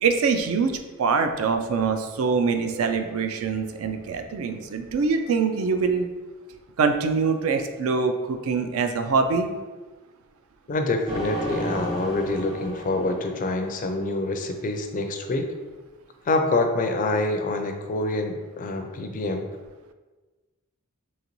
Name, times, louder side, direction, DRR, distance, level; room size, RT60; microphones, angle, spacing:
voice 1, 0.0-6.1 6.8-9.5, right 5 dB, 70° right, 7 dB, 0.4 m, -24 dB
voice 2, 10.7-15.5 16.3-19.5, left 2 dB, 40° left, 5 dB, 0.4 m, -26 dB
sound 1, 11.1-14.5, equal, 30° right, 1.0 m, -34 dB
3.9 x 3.0 x 3.0 m, 1.2 s
head